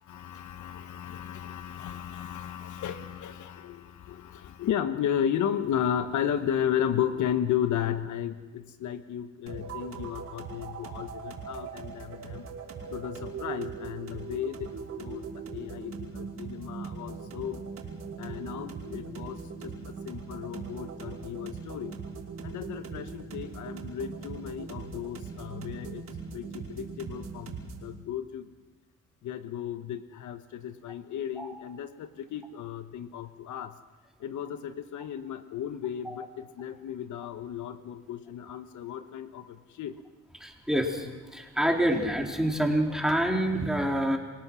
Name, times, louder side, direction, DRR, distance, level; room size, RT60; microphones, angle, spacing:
voice 1, 0.0-12.4 12.9-15.2 15.5-17.6 18.2-22.0 22.4-26.1 26.3-28.5 29.2-33.7 34.2-40.0, left 9 dB, 75° left, 10 dB, 1.2 m, -34 dB
sound 1, 9.5-27.9, right 5 dB, 60° right, 5.2 m, -40 dB
voice 2, 40.4-41.1 41.3-44.2, right 1 dB, ahead, 1 dB, 3.7 m, -27 dB
28.5 x 18.0 x 6.2 m, 1.3 s
cardioid pair, 90°, 30 cm